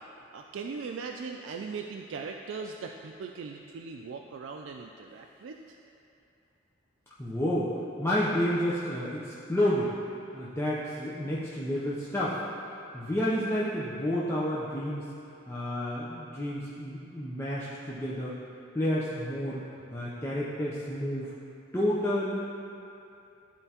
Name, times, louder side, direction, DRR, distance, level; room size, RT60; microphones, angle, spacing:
voice 1, 0.3-5.6, right 5 dB, 85° right, 2 dB, 0.4 m, -39 dB
voice 2, 7.2-7.7 8.0-9.9 10.3-12.4 12.9-15.1 15.5-18.4 18.7-19.6 19.9-21.3 21.7-22.5, equal, 15° left, -8 dB, 0.6 m, -30 dB
12.0 x 4.4 x 2.8 m, 2.6 s
head